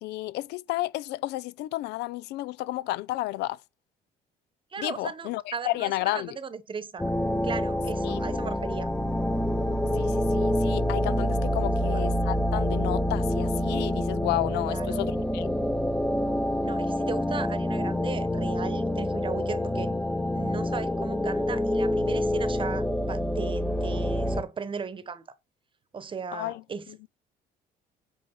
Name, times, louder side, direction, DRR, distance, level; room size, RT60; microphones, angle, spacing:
voice 1, 0.0-3.6 4.8-6.4 8.0-8.2 9.9-15.5 26.3-26.6, left 17 dB, 80° left, 0.5 m, -32 dB
voice 2, 4.7-7.0 7.4-8.9 11.8-12.0 14.7-15.0 16.6-19.9 20.3-25.2 25.9-27.1, right 5 dB, 30° right, 1.0 m, -37 dB
sound 1, 7.0-24.4, left 1 dB, 5° left, 0.7 m, -27 dB
8.8 x 3.3 x 5.4 m
cardioid pair, 110°, 17 cm